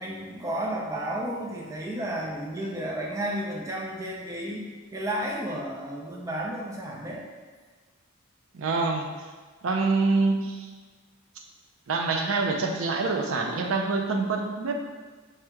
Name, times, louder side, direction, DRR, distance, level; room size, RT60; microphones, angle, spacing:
voice 1, 0.0-7.2, right 1 dB, 15° right, -2 dB, 0.4 m, -32 dB
voice 2, 8.5-9.1 9.6-10.7 11.9-14.7, right 3 dB, 80° right, 3 dB, 0.4 m, -25 dB
3.3 x 2.9 x 3.5 m, 1.4 s
head